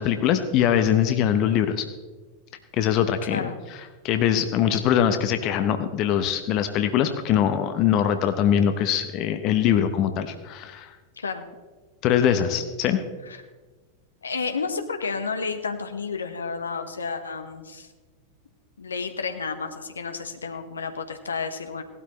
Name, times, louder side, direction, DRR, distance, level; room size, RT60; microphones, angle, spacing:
voice 1, 0.0-1.9 2.8-3.4 4.0-10.9 12.0-13.0, left 9 dB, 40° left, 8 dB, 0.9 m, -22 dB
voice 2, 14.2-17.9 18.8-21.8, left 5 dB, 75° left, 7 dB, 1.1 m, -31 dB
18.0 x 12.5 x 3.1 m, 1.3 s
figure-of-eight pair, 90°, 0 cm